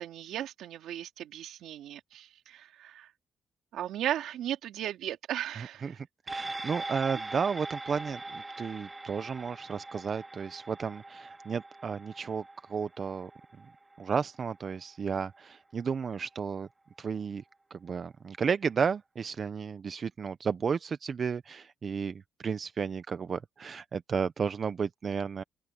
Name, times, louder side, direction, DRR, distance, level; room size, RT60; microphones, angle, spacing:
voice 1, 0.0-3.1 3.7-6.0, right 11 dB, 80° right, 2.7 m, -36 dB
voice 2, 5.8-13.3 14.0-16.7 17.0-17.4 17.7-25.4, right 6 dB, 45° right, 0.7 m, -33 dB
sound 1, 6.3-15.0 15.3-15.4, right 2 dB, 20° right, 2.6 m, -42 dB
open air
cardioid pair, 90°, 0 cm